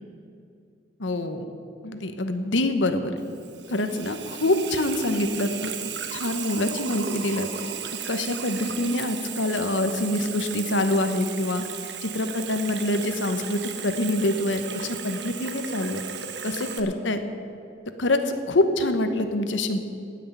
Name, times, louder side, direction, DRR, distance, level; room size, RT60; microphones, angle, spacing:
voice 1, 1.0-1.5 1.8-3.2 3.7-5.7 6.1-7.5 8.1-11.6 12.0-16.0 16.4-17.2 18.0-19.8, left 1 dB, 85° left, 8 dB, 1.1 m, -25 dB
Water tap faucet / Sink (filling or washing), 3.2-16.8, right 7 dB, 65° right, 1.1 m, -35 dB
16.0 x 6.4 x 9.4 m, 2.6 s
head